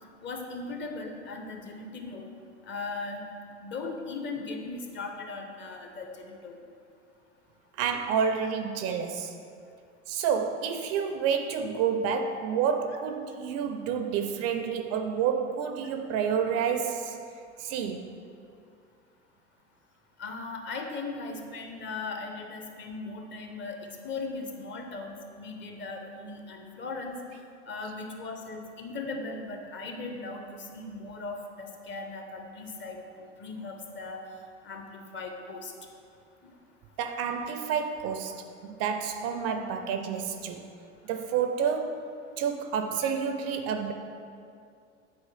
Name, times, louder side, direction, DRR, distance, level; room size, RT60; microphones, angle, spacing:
voice 1, 0.2-2.3 2.7-3.2 3.6-6.6 20.2-27.1 27.7-34.2 34.6-35.7 36.4-36.5, left 3 dB, 30° left, 3 dB, 0.9 m, -38 dB
voice 2, 7.8-9.3 10.1-17.2 17.6-18.1 37.0-40.7 41.0-42.1 42.4-43.9, right 7 dB, 45° right, 7 dB, 0.5 m, -29 dB
8.4 x 4.4 x 3.3 m, 2.5 s
hypercardioid pair, 80°, 37 cm